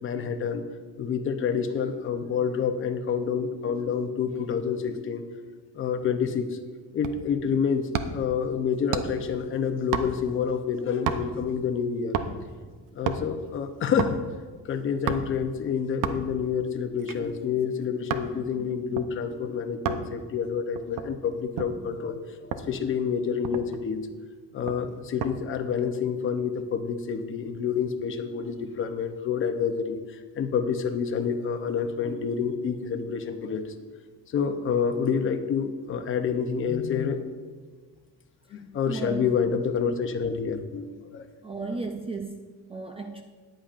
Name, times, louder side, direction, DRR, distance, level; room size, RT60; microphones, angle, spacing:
voice 1, 0.0-0.6 1.0-5.2 5.7-6.5 6.9-12.1 12.9-14.2 14.7-24.1 24.5-30.0 30.4-33.7 34.3-37.2 38.5-40.9 41.1-41.2, left 6 dB, 35° left, 7 dB, 0.8 m, -28 dB
sound 1, 7.0-7.3 7.9-8.3 8.9-9.3 9.9-10.4 11.1-11.4 12.1-12.5 12.9-13.3 14.0-14.2 15.1-15.4 16.0-16.4 17.0-18.3 19.0-19.1 19.8-20.1 20.7-21.8 22.5-22.7 23.1-23.2 23.4-23.9 24.7-25.4 25.7-26.0, right 8 dB, 65° right, 0.8 m, -31 dB
voice 2, 38.8-39.3 41.4-43.2, right 3 dB, 15° right, 4 dB, 0.4 m, -35 dB
14.0 x 10.0 x 2.5 m, 1.5 s
cardioid pair, 165°, 34 cm